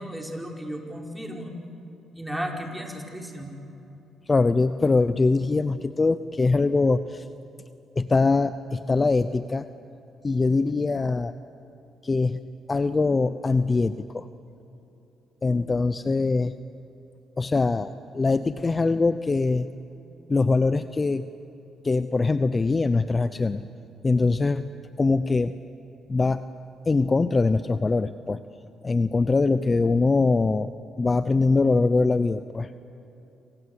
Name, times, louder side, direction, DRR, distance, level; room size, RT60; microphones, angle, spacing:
voice 1, 0.0-1.5 2.1-3.5, equal, 5° right, 1 dB, 4.9 m, -34 dB
voice 2, 4.3-7.3 8.0-9.7 10.2-11.4 12.0-12.4 12.7-14.3 15.4-16.5 17.4-19.7 20.3-21.3 21.8-23.6 24.0-24.7 25.0-25.5 26.1-26.4 26.9-28.4 28.8-32.7, left 3 dB, 25° left, 12 dB, 0.7 m, -23 dB
27.5 x 25.5 x 8.2 m, 3.0 s
cardioid pair, 90°, 0 cm